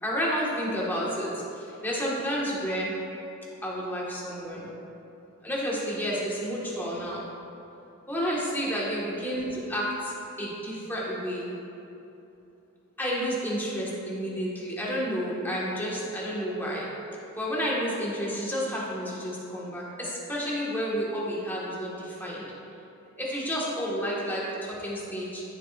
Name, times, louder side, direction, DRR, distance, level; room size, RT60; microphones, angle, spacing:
voice 1, 0.0-2.9 3.6-4.7 5.4-7.2 8.1-10.1 10.4-11.5 13.0-16.9 17.4-22.5 23.2-25.4, equal, 10° left, -6 dB, 1.7 m, -30 dB
14.0 x 7.6 x 2.6 m, 2.9 s
head